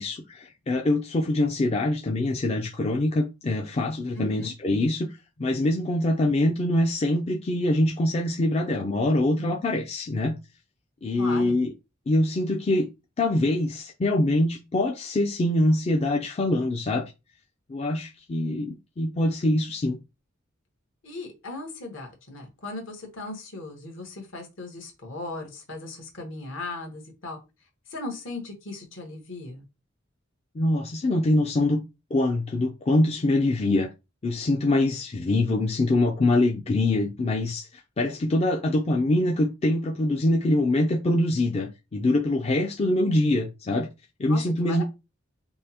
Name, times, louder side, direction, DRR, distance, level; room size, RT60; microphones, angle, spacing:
voice 1, 0.0-10.4 11.0-11.7 12.1-12.9 13.2-17.1 17.7-20.0 30.5-31.8 32.1-33.9 34.2-43.9 44.2-44.8, left 1 dB, 30° left, 0.4 m, -24 dB
voice 2, 4.1-4.5 11.2-11.6 21.0-27.4 27.9-29.6 44.3-44.8, left 2 dB, 65° left, 1.3 m, -37 dB
5.3 x 2.0 x 2.8 m
head